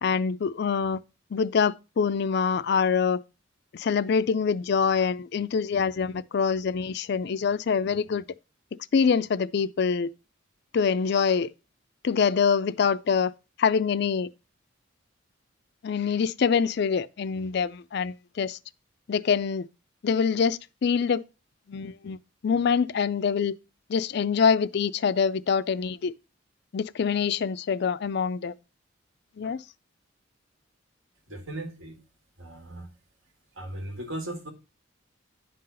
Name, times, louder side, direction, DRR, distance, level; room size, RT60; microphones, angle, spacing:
voice 1, 0.0-1.0 1.3-3.2 3.7-8.2 8.9-10.1 10.7-11.5 12.0-13.3 13.6-14.3 15.8-18.6 19.1-19.7 20.0-21.2 21.7-22.2 22.4-23.6 23.9-26.1 26.7-28.5 29.4-29.6, left 6 dB, 55° left, 0.4 m, -25 dB
voice 2, 31.3-32.0 32.4-32.9 33.6-34.5, right 1 dB, 80° right, 2.1 m, -37 dB
9.9 x 3.9 x 5.5 m
head